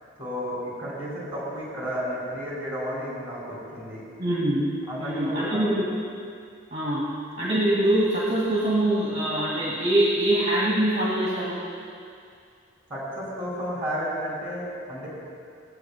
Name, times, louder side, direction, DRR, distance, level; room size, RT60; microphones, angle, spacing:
voice 1, 0.2-4.0 4.9-5.6 12.9-15.1, equal, 10° right, -6 dB, 2.8 m, -32 dB
voice 2, 4.2-4.7 5.0-5.9 6.7-11.6, right 1 dB, 30° right, -7 dB, 1.8 m, -24 dB
21.0 x 7.8 x 2.2 m, 2.3 s
head